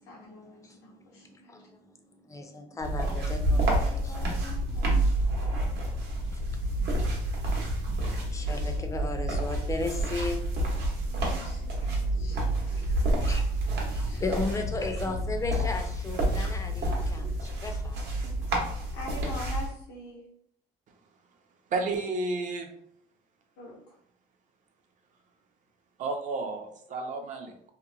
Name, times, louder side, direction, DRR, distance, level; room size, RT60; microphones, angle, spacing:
voice 1, 0.0-1.5 3.5-5.1 11.1-12.8 14.1-14.6 18.2-20.2 23.6-24.0, left 1 dB, 90° left, -4 dB, 0.6 m, -45 dB
voice 2, 0.6-1.9 2.3-4.2 5.8-5.9 6.3-12.1 12.9-18.0, left 3 dB, 20° left, 5 dB, 0.4 m, -37 dB
sound 1, 2.8-19.7, right 1 dB, 75° right, 0.8 m, -29 dB
voice 3, 21.7-22.7 26.0-27.5, right 3 dB, 50° right, 4 dB, 0.5 m, -31 dB
2.8 x 2.1 x 2.5 m, 0.70 s
cardioid pair, 110°, 17 cm